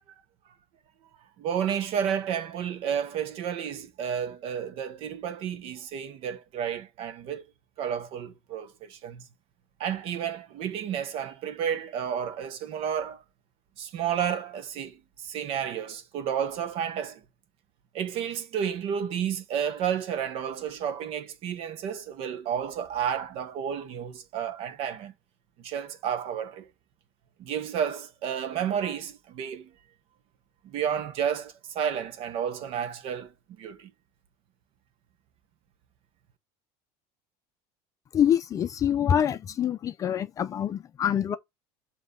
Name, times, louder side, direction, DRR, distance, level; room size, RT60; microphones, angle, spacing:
voice 1, 1.4-7.4 7.8-9.2 9.8-13.2 13.8-17.2 17.9-25.1 25.6-26.7 27.4-29.7 30.6-33.3 33.6-33.9, right 8 dB, 50° right, 1.3 m, -31 dB
voice 2, 38.1-41.4, left 9 dB, 25° left, 0.6 m, -25 dB
7.7 x 2.9 x 5.4 m
cardioid pair, 160°, 13 cm